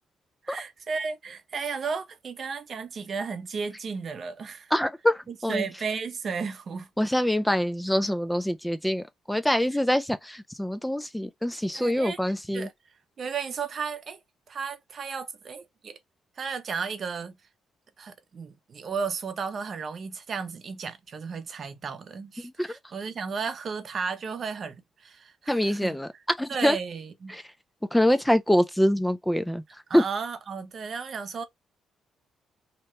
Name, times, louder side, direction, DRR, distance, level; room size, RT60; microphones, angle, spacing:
voice 1, 0.4-4.7 5.5-6.9 11.7-12.2 12.5-12.7 13.2-14.2 14.5-16.0 16.4-17.3 18.0-26.0 26.5-27.4 29.9-31.4, right 5 dB, 50° right, 0.6 m, -34 dB
voice 2, 4.7-5.7 7.0-12.7 22.4-22.8 25.5-26.1 26.4-26.8 27.3-27.5 27.9-30.0, equal, 5° left, 0.3 m, -25 dB
2.8 x 2.1 x 2.9 m
cardioid pair, 90°, 0 cm